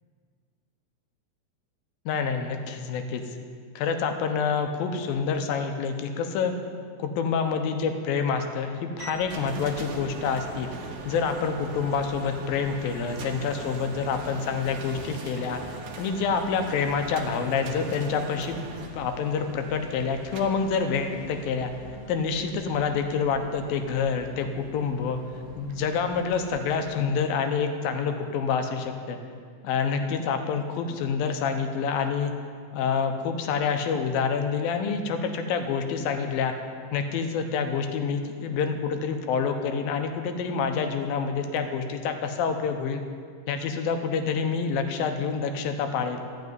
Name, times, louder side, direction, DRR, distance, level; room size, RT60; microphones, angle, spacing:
voice 1, 2.1-3.2 3.8-6.5 7.0-10.7 11.1-15.6 16.0-18.6 18.9-21.7 22.1-25.2 25.6-29.2 29.6-32.3 32.7-36.5 36.9-43.0 43.5-46.2, left 5 dB, 85° left, 6 dB, 2.7 m, -27 dB
sound 1, 9.0-26.8, right 3 dB, 75° right, 1.2 m, -41 dB
13.5 x 6.1 x 9.4 m, 2.1 s
omnidirectional pair, 4.1 m